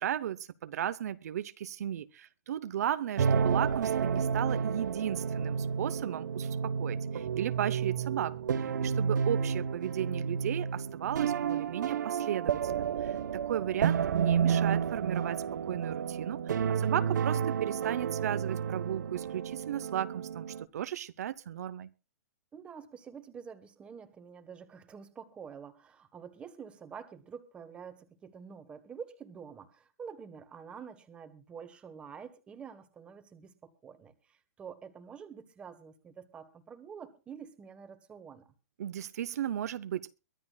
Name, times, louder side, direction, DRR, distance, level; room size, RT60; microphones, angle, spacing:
voice 1, 0.0-16.6 16.8-21.9 38.8-40.1, right 10 dB, 65° right, 13 dB, 0.8 m, -35 dB
sound 1, 3.2-20.6, right 7 dB, 85° right, 1.0 m, -31 dB
voice 2, 16.7-17.3 22.5-38.5, right 6 dB, 10° right, 9 dB, 1.3 m, -48 dB
23.0 x 13.5 x 2.4 m, 0.31 s
hypercardioid pair, 165°, 9 cm